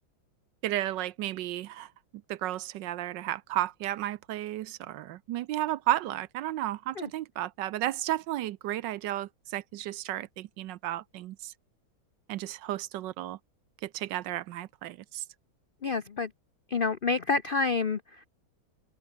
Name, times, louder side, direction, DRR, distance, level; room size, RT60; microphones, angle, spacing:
voice 1, 0.6-1.9 2.3-11.5 12.3-13.4 13.8-15.2, right 14 dB, 70° right, 1.2 m, -33 dB
voice 2, 15.8-16.3 16.7-18.0, left 4 dB, 75° left, 0.5 m, -28 dB
open air
omnidirectional pair, 2.2 m